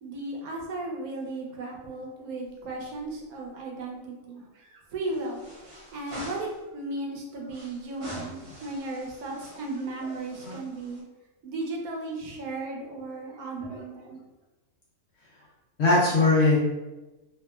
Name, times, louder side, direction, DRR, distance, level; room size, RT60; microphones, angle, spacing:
voice 1, 0.0-5.4 5.9-11.0 11.4-14.2, right 2 dB, 80° right, -1 dB, 1.1 m, -35 dB
sound 1, 2.4-3.2 3.4-3.5 5.0-6.6 7.5-11.0, equal, 50° right, 0.9 m, -46 dB
voice 2, 15.8-16.6, left 2 dB, 60° left, -5 dB, 0.8 m, -21 dB
2.9 x 2.4 x 2.2 m, 1.1 s
omnidirectional pair, 1.5 m